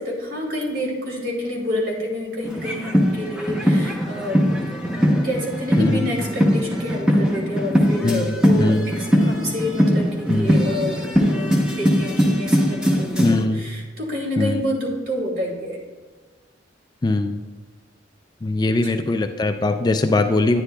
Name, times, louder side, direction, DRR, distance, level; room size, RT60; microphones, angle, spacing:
voice 1, 0.0-4.4 5.0-15.8 18.8-19.0, left 1 dB, 55° right, -2 dB, 2.4 m, -28 dB
sound 1, 2.4-13.5, equal, 5° right, 0.8 m, -21 dB
voice 2, 8.0-8.9 10.3-10.5 13.2-13.6 14.4-14.6 17.0-17.4 18.4-20.6, left 2 dB, 20° left, 7 dB, 0.3 m, -21 dB
9.8 x 9.7 x 2.3 m, 1.4 s
head